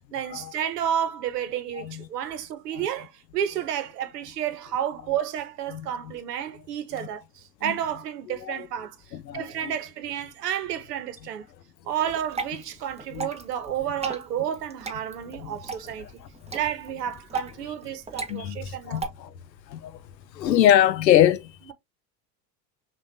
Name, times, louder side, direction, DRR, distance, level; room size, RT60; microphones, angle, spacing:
voice 1, 0.1-9.0 9.3-11.4 11.8-16.1 16.5-19.1, right 10 dB, 70° right, 1.0 m, -31 dB
voice 2, 1.7-2.1 5.7-6.1 6.9-7.1 7.6-7.8 8.3-8.7 9.1-9.7 13.1-13.3 15.4-15.6 16.0-16.1 18.3-19.3 19.7-20.0 20.3-21.5, left 11 dB, 85° left, 0.6 m, -24 dB
Water / Drip, 12.1-19.1, right 4 dB, 15° right, 0.9 m, -37 dB
5.7 x 2.5 x 2.6 m
figure-of-eight pair, 80°, 49 cm